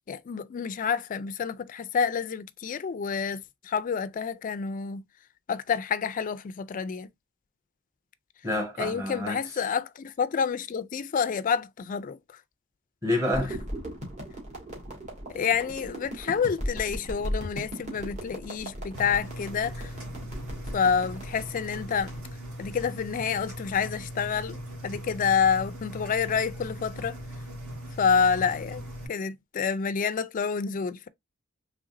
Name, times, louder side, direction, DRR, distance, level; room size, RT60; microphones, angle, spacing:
voice 1, 0.1-5.0 5.5-7.1 8.8-12.2 15.3-19.9 20.7-22.1 22.6-27.2 28.0-28.8 29.1-31.1, left 6 dB, 40° left, 0.3 m, -28 dB
voice 2, 8.4-9.7 13.0-13.5, left 1 dB, 15° right, 1.4 m, -29 dB
sound 1, 13.3-22.3, equal, 35° right, 1.8 m, -37 dB
Engine, 18.9-29.1, equal, 70° right, 2.0 m, -40 dB
3.9 x 3.2 x 2.5 m
head